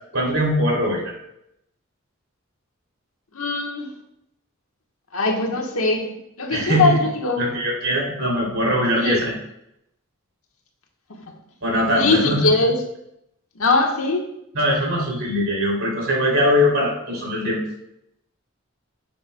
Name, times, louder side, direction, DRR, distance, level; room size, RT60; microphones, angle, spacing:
voice 1, 0.1-1.0 6.5-7.0 7.4-9.3 11.6-12.5 14.5-17.6, equal, 70° right, -2 dB, 3.0 m, -21 dB
voice 2, 3.3-3.9 5.1-7.5 8.9-9.2 11.1-11.2 11.9-12.8 13.5-14.3, left 3 dB, 80° left, 2 dB, 1.3 m, -21 dB
10.5 x 6.8 x 2.2 m, 0.80 s
head